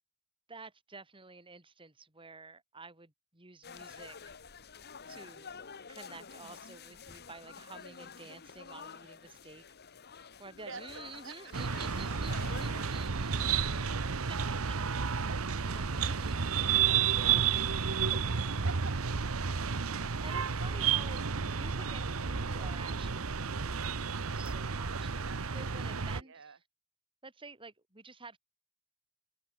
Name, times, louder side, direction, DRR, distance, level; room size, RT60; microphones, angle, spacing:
voice 1, 0.5-4.2 5.1-9.6 10.4-14.0 14.3-14.4 14.6-14.7 15.6-17.4 19.4-24.0 24.3-26.6 27.2-28.4, right 3 dB, 25° right, 3.2 m, -50 dB
sound 1, 3.6-13.1, left 5 dB, 50° left, 1.6 m, -49 dB
sound 2, 11.5-26.2, right 6 dB, 80° right, 1.0 m, -31 dB
voice 2, 13.7-14.9 15.3-15.7 16.1-17.5 18.6-18.9 19.4-20.1 24.9-25.6 26.0-26.6, right 5 dB, 65° right, 1.4 m, -50 dB
head